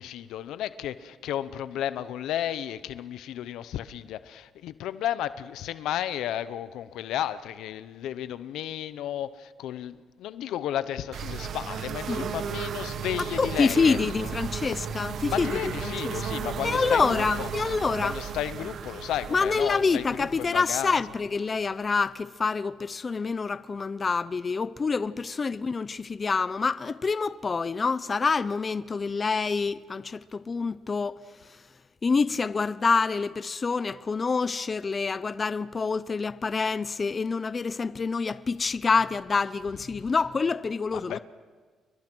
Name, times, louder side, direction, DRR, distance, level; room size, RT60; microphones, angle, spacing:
voice 1, 0.0-14.3 15.3-17.5 18.0-20.9 40.9-41.2, left 11 dB, 85° left, 0.8 m, -33 dB
sound 1, 11.1-21.7, right 7 dB, 65° right, 1.4 m, -35 dB
voice 2, 13.4-16.3 16.6-18.1 19.3-31.2 32.0-41.2, left 4 dB, 35° left, 0.7 m, -27 dB
29.5 x 23.0 x 6.3 m
cardioid pair, 90°, 0 cm